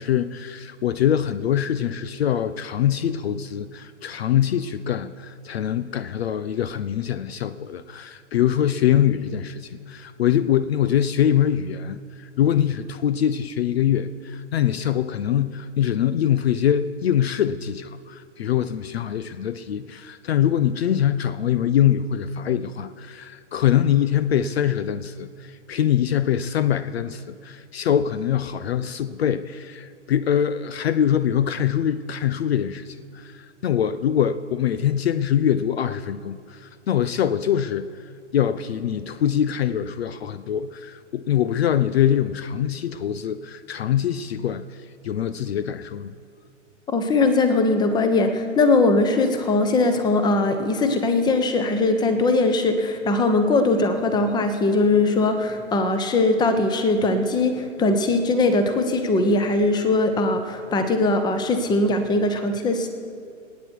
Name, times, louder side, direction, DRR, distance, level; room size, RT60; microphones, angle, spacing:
voice 1, 0.0-46.1, left 10 dB, 55° left, 14 dB, 0.6 m, -23 dB
voice 2, 46.9-62.9, left 2 dB, 10° left, 8 dB, 1.0 m, -20 dB
27.0 x 9.3 x 4.6 m, 2.3 s
figure-of-eight pair, 120°, 38 cm